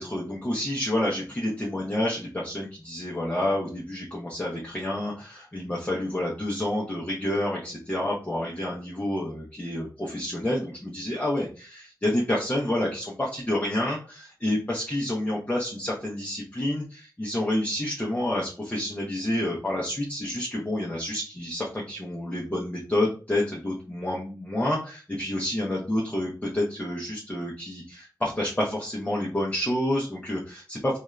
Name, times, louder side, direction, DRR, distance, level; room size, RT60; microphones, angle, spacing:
voice 1, 0.0-31.0, left 1 dB, 20° left, -4 dB, 0.8 m, -29 dB
2.7 x 2.4 x 3.1 m, 0.35 s
wide cardioid pair, 95°, 8 cm